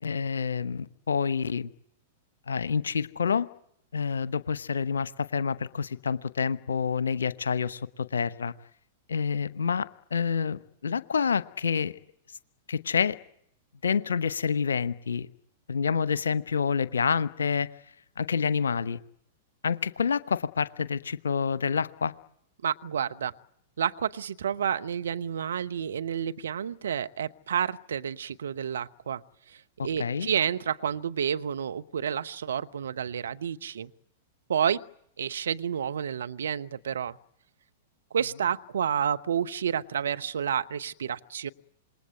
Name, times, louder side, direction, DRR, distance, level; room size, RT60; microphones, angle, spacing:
voice 1, 0.0-1.7 2.5-3.5 3.9-8.5 9.1-11.9 12.7-13.2 13.8-15.3 15.7-17.7 18.2-19.0 19.6-22.1 30.0-30.3, left 6 dB, 70° left, 1.0 m, -28 dB
voice 2, 22.6-23.3 23.8-29.2 29.5-33.9 34.5-34.8 35.2-37.2 38.1-41.5, right 8 dB, 65° right, 1.0 m, -30 dB
27.5 x 21.0 x 9.1 m
figure-of-eight pair, 100°, 0 cm